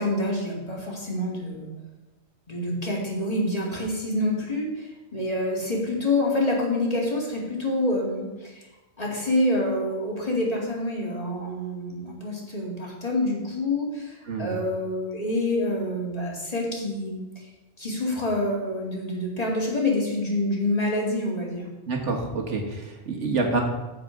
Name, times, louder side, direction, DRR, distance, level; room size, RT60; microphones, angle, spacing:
voice 1, 0.0-1.7 2.5-8.6 9.0-17.5 17.8-21.7, left 1 dB, 30° left, -3 dB, 2.4 m, -27 dB
voice 2, 21.9-23.6, right 3 dB, 75° right, 1 dB, 1.7 m, -27 dB
14.5 x 4.9 x 5.1 m, 1.1 s
omnidirectional pair, 1.2 m